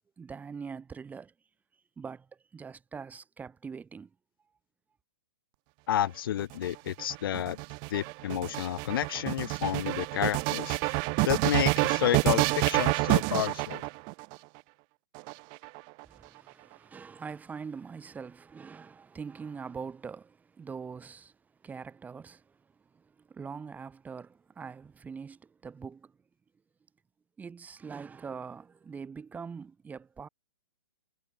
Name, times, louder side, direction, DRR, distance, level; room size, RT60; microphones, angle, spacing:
voice 1, 0.2-1.3 2.0-4.1 16.1-21.3 21.6-22.6 22.9-26.1 27.4-30.3, right 5 dB, 10° right, 3.7 m, -43 dB
voice 2, 5.9-7.6 7.9-11.0 11.2-13.8, left 11 dB, 60° left, 0.8 m, -30 dB
sound 1, 6.4-14.3 15.1-16.0, right 32 dB, 35° right, 2.3 m, -28 dB
hypercardioid pair, 125°, 13 cm